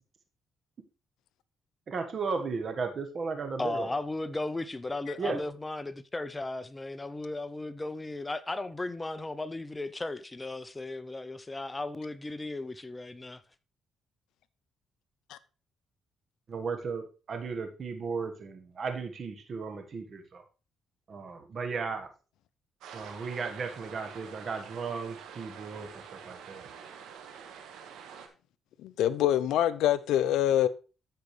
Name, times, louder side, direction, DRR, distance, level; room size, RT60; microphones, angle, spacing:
voice 1, 1.9-3.9 5.2-5.4 16.5-20.4 21.1-22.1 22.9-26.7, right 4 dB, 50° right, 1.4 m, -35 dB
voice 2, 3.6-13.4, left 2 dB, 20° left, 0.6 m, -36 dB
sound 1, 22.8-28.3, right 7 dB, 85° right, 1.4 m, -47 dB
voice 3, 28.8-30.7, left 11 dB, 85° left, 0.5 m, -25 dB
13.5 x 5.0 x 3.2 m
cardioid pair, 90°, 0 cm